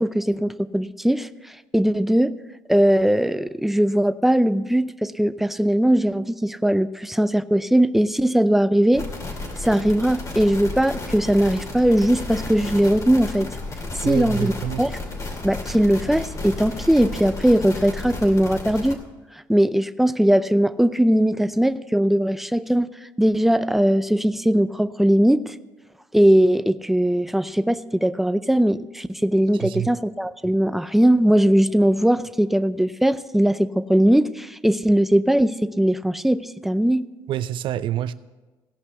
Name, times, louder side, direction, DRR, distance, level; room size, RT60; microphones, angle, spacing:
voice 1, 0.0-2.3 2.7-9.0 9.6-13.5 13.9-14.5 14.8-14.9 15.4-19.0 19.5-22.9 23.2-25.5 26.1-37.0, right 1 dB, 5° right, 13 dB, 0.5 m, -20 dB
sound 1, 8.9-18.9, left 2 dB, 35° left, 2.6 m, -33 dB
voice 2, 14.0-14.8 29.6-29.9 37.3-38.1, right 11 dB, 65° right, 15 dB, 0.6 m, -27 dB
16.0 x 5.7 x 7.8 m, 1.2 s
supercardioid pair, 80°, 9 cm